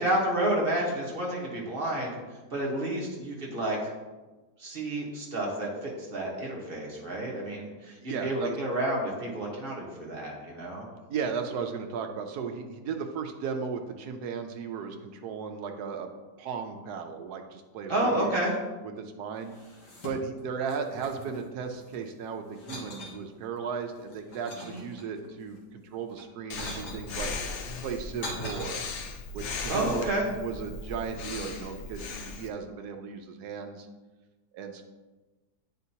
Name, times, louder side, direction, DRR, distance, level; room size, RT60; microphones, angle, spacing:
voice 1, 0.0-2.2 2.5-3.8 4.6-10.8 17.9-18.6 24.6-24.8 29.7-30.3, right 1 dB, 35° right, -2 dB, 1.4 m, -30 dB
voice 2, 8.0-8.5 11.1-16.1 16.4-18.3 19.0-19.5 20.0-27.3 27.8-28.8 29.3-30.0 30.4-33.9 34.5-34.8, right 6 dB, 75° right, 5 dB, 1.2 m, -35 dB
sound 1, 19.4-20.4 20.7-22.0 22.5-23.2 23.8-25.3 26.1-27.0 27.8-28.6, left 1 dB, 80° left, 1.8 m, -41 dB
Breathing, 26.5-32.5, left 4 dB, 65° left, 0.7 m, -38 dB
9.3 x 4.4 x 2.8 m, 1.2 s
omnidirectional pair, 1.8 m